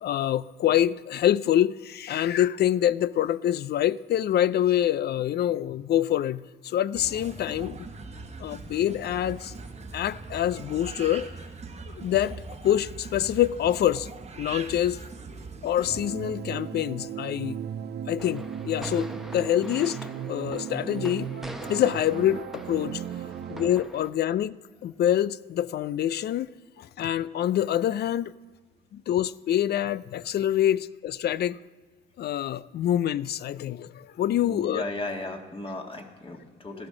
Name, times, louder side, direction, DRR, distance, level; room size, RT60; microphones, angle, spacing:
voice 1, 0.0-7.9 8.4-9.5 9.9-11.3 11.9-14.1 14.4-15.0 15.6-17.6 18.1-20.0 20.3-21.3 21.7-23.0 23.5-24.6 24.8-26.5 26.8-28.3 28.9-31.6 32.2-34.8, left 11 dB, 55° left, 0.4 m, -26 dB
sound 1, 6.9-16.1, right 4 dB, 35° right, 1.1 m, -41 dB
sound 2, 15.8-23.7, right 8 dB, 60° right, 0.6 m, -36 dB
sound 3, 18.2-24.1, right 1 dB, ahead, 0.9 m, -43 dB
voice 2, 34.4-36.9, left 2 dB, 25° left, 1.6 m, -35 dB
13.5 x 12.5 x 3.8 m
cardioid pair, 90°, 20 cm